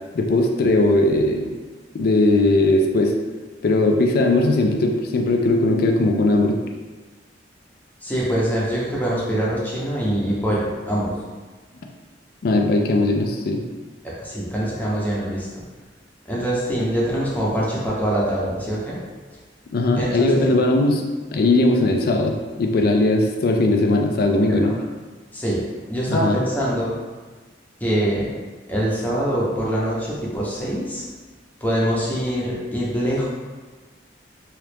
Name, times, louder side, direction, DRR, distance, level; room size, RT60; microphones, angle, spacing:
voice 1, 0.1-1.5 1.9-3.1 3.6-6.6 12.4-13.6 19.7-21.1 21.3-24.7 26.1-26.4, left 2 dB, 55° left, 3 dB, 0.4 m, -19 dB
voice 2, 8.0-11.1 14.0-15.6 16.3-19.0 20.0-20.5 25.3-26.9 27.8-28.4 28.7-31.0 31.6-33.3, equal, 10° left, -6 dB, 0.6 m, -24 dB
3.0 x 2.4 x 3.3 m, 1.3 s
head